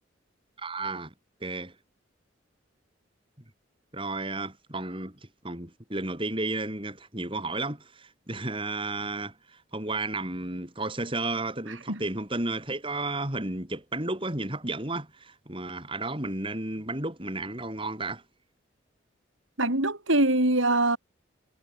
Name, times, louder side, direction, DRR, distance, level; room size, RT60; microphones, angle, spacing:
voice 1, 0.6-1.1 1.4-1.7 3.9-5.1 5.4-18.2, right 2 dB, 25° right, 4.5 m, -33 dB
voice 2, 19.6-21.0, right 2 dB, 80° right, 5.9 m, -23 dB
head